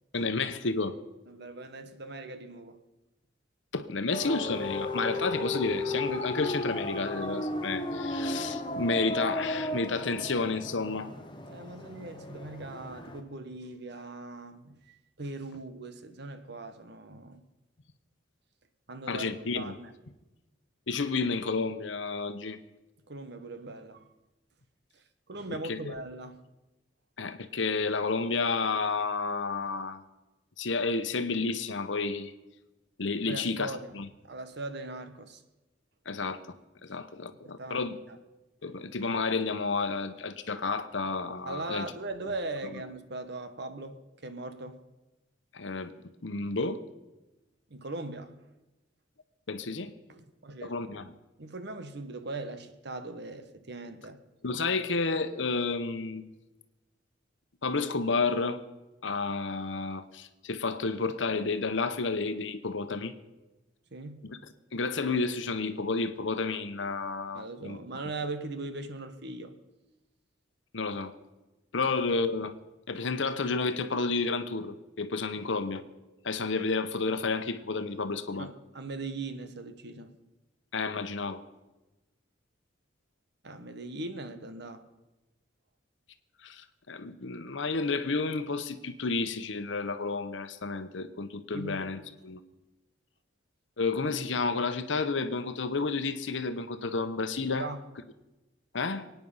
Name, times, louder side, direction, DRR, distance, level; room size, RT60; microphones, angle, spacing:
voice 1, 0.1-0.9 3.7-11.1 19.1-19.8 20.9-22.6 25.5-25.9 27.2-30.0 30.6-32.3 33.0-34.1 36.1-36.4 36.8-38.0 38.6-41.9 45.5-45.9 46.2-46.8 49.5-49.9 50.6-51.1 54.4-56.3 57.6-58.6 59.0-63.1 64.2-64.4 64.7-67.8 70.7-71.1 71.7-72.5 72.9-75.8 76.2-78.5 80.7-81.4 86.4-92.4 93.8-97.7 98.7-99.1, left 4 dB, 70° left, 1.0 m, -31 dB
voice 2, 1.3-2.8 11.5-17.4 18.9-19.2 19.5-19.9 23.1-24.1 24.9-26.4 33.3-33.9 34.2-35.4 37.4-38.2 41.4-44.8 47.7-48.4 50.1-50.7 51.4-54.2 63.9-64.3 67.3-69.6 78.4-80.1 83.4-84.8 91.5-91.8 97.5-97.8, right 2 dB, 60° right, 1.2 m, -40 dB
sound 1, 4.1-13.2, left 1 dB, 25° left, 1.2 m, -34 dB
23.0 x 9.4 x 5.6 m
head